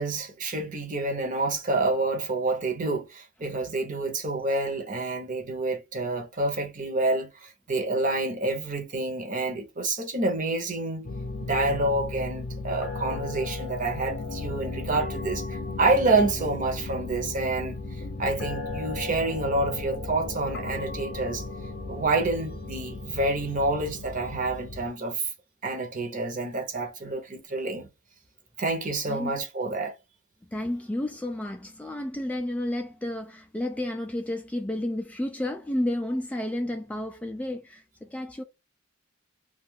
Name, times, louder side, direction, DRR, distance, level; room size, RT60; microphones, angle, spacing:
voice 1, 0.0-11.0 11.4-17.7 18.2-21.4 21.9-25.3 25.6-27.9 28.6-29.9, right 2 dB, 40° right, 0.9 m, -28 dB
voice 2, 3.4-3.7 29.1-29.4 30.5-38.4, left 1 dB, 5° left, 0.3 m, -31 dB
sound 1, 11.0-24.9, left 3 dB, 50° left, 0.7 m, -35 dB
2.5 x 2.4 x 3.4 m
head